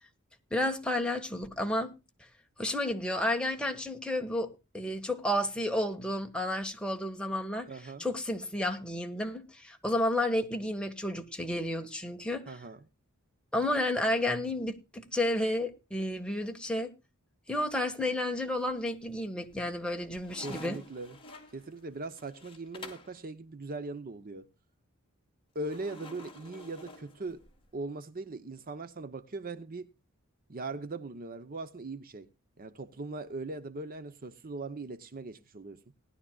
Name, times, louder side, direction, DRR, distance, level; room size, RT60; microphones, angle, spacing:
voice 1, 0.5-1.9 2.6-7.7 8.0-12.5 13.5-16.9 17.5-20.8, left 1 dB, 5° left, 1.5 m, -31 dB
voice 2, 7.7-8.1 12.5-12.8 20.4-21.2 21.5-24.5 25.5-27.4 27.7-29.9 30.5-32.3 32.6-35.8, right 3 dB, 40° right, 0.8 m, -40 dB
sound 1, 18.5-19.1 19.5-23.2 25.6-27.7, left 2 dB, 25° left, 2.5 m, -50 dB
19.0 x 11.5 x 2.3 m
head